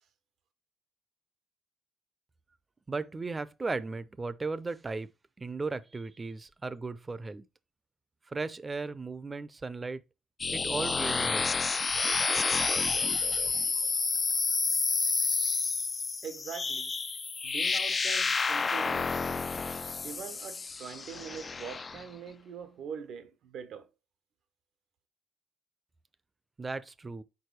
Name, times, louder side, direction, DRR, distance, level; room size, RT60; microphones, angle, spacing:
voice 1, 2.9-5.1 5.4-7.4 8.3-10.0 10.5-11.8 26.6-27.2, right 3 dB, 25° right, 0.6 m, -36 dB
sound 1, 10.4-22.0, left 4 dB, 35° left, 0.3 m, -30 dB
voice 2, 16.2-16.9 17.4-19.5 20.0-23.9, right 7 dB, 75° right, 1.0 m, -43 dB
4.8 x 4.5 x 4.6 m
cardioid pair, 90°, 0 cm